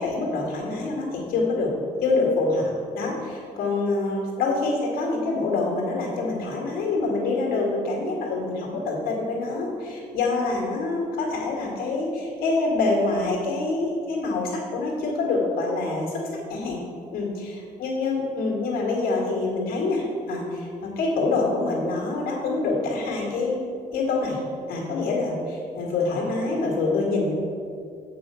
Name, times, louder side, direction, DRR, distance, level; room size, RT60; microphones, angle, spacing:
voice 1, 0.0-1.7 2.0-16.2 16.5-16.8 17.1-23.6 23.9-24.4 24.7-27.3, left 3 dB, 90° left, -1 dB, 2.0 m, -26 dB
7.2 x 5.4 x 6.9 m, 2.4 s
cardioid pair, 100°, 15 cm